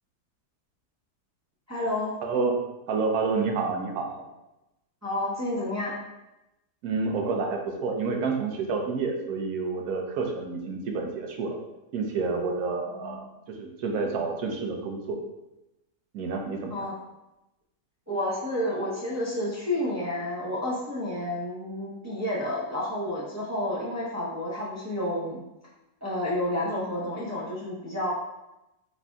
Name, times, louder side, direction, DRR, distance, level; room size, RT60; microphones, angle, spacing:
voice 1, 1.7-2.1 5.0-5.9 13.0-13.2 16.7-16.9 18.1-25.4 26.0-28.1, left 1 dB, 20° right, -7 dB, 0.4 m, -30 dB
voice 2, 2.2-2.6 2.9-4.2 6.8-11.6 11.9-13.2 13.5-15.2 16.1-16.9, right 4 dB, 70° right, 1 dB, 1.1 m, -29 dB
4.2 x 2.6 x 3.4 m, 0.94 s
omnidirectional pair, 1.8 m